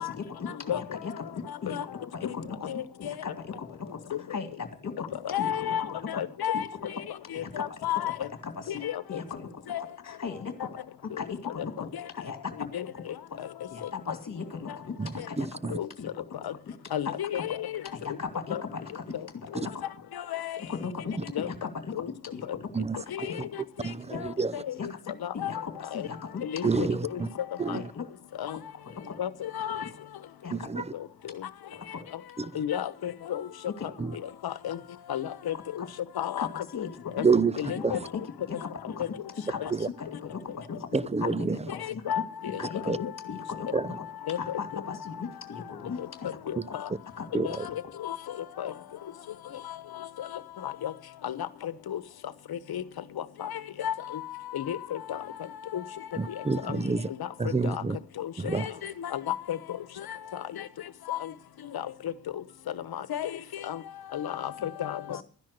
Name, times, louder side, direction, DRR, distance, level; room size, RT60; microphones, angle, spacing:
voice 1, 0.0-1.8 2.1-2.7 3.0-5.9 6.1-6.2 6.5-6.6 7.3-8.0 8.4-8.8 9.1-9.5 10.0-10.7 11.2-12.5 12.9-13.0 13.7-16.1 16.8-17.4 17.8-19.8 20.7-21.9 22.3-22.7 23.2-23.5 24.8-24.9 25.3-27.2 27.7-28.0 28.8-29.2 29.8-29.9 30.4-30.7 31.9-32.0 33.8-33.9 36.4-37.2 37.6-38.2 38.5-39.0 39.5-41.0 41.3-42.2 42.6-42.9 43.3-43.7 44.0-44.1 44.4-46.4 47.2-47.3 47.6-47.9 65.1-65.2, left 5 dB, 45° left, 2.3 m, -38 dB
voice 2, 2.6-3.1 5.2-6.7 7.3-8.1 8.7-9.0 9.7-9.8 12.7-12.8 15.7-15.9 16.4-16.5 16.9-17.6 18.5-18.6 20.2-20.6 21.3-21.5 22.0-22.1 23.1-23.2 24.1-24.6 25.2-25.5 25.9-26.1 26.4-26.6 27.7-27.8 28.4-28.6 29.2-29.8 32.6-33.4 34.4-34.8 35.1-35.5 36.2-36.9 37.2-37.3 37.6-38.0 42.1-42.2 42.8-43.0 44.3-44.6 46.5-46.9 47.4-47.6 48.0-48.2 48.6-48.7 50.2-50.3 50.6-50.9 51.2-51.4 51.6-52.0 52.7-52.8 53.4-53.5 53.8-54.2 54.5-55.2 55.7-55.8 56.7-56.8 57.6-57.8 58.2-59.6 61.1-61.3 62.9-63.3 63.7-63.8 64.1-65.2, left 10 dB, 80° left, 1.1 m, -32 dB
voice 3, 15.0-15.8 22.7-23.0 23.8-24.5 26.6-27.3 27.6-27.9 30.5-30.9 32.4-32.5 34.0-34.1 37.2-37.5 37.8-37.9 39.7-39.9 40.9-41.6 42.9-43.0 43.7-43.9 46.6-46.7 47.3-47.7 56.2-57.1 57.4-58.0 58.4-58.7, right 4 dB, 20° right, 0.6 m, -28 dB
12.5 x 10.5 x 6.6 m
cardioid pair, 80°, 37 cm